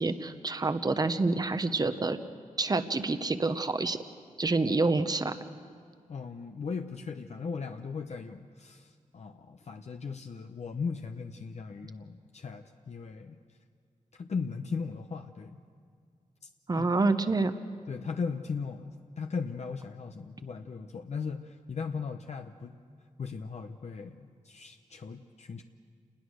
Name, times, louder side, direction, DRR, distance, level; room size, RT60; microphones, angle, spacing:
voice 1, 0.0-2.2 2.6-4.0 4.4-5.3 16.7-17.5, right 3 dB, 30° right, 10 dB, 1.0 m, -27 dB
voice 2, 6.1-13.4 14.1-15.6 16.4-16.9 17.3-17.4 17.9-22.7 23.2-25.6, left 5 dB, 55° left, 5 dB, 0.8 m, -38 dB
29.0 x 20.5 x 6.5 m, 2.2 s
wide cardioid pair, 115°, 14 cm